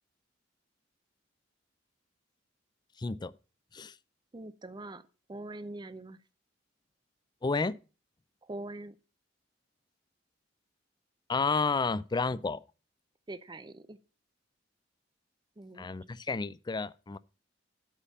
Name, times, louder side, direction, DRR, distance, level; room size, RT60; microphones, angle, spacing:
voice 1, 3.0-3.3 3.7-3.9 7.4-7.8 11.3-12.6 15.8-17.2, left 4 dB, 25° left, 0.4 m, -31 dB
voice 2, 4.3-5.0 5.3-6.2 8.4-9.0 13.3-14.0 15.6-15.9, right 2 dB, 25° right, 0.6 m, -43 dB
8.4 x 5.5 x 7.1 m
head